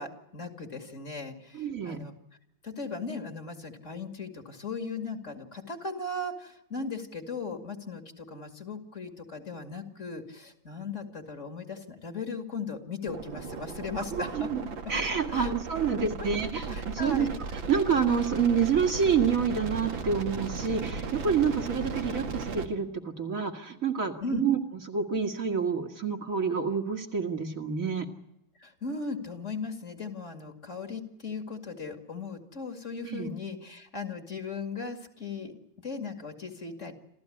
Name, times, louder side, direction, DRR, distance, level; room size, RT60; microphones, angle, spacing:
voice 1, 0.0-2.1 2.6-14.5 15.3-15.5 16.2-16.3 16.7-17.3 24.2-24.4 28.6-35.6 35.8-36.9, left 4 dB, 40° left, 7 dB, 2.5 m, -37 dB
voice 2, 1.5-2.0 14.1-14.6 14.9-24.6 24.9-28.1 33.0-33.3, right 6 dB, 45° right, 3 dB, 2.3 m, -28 dB
sound 1, 13.1-22.7, right 4 dB, 90° right, 2.6 m, -36 dB
28.0 x 14.5 x 9.9 m, 0.86 s
omnidirectional pair, 2.0 m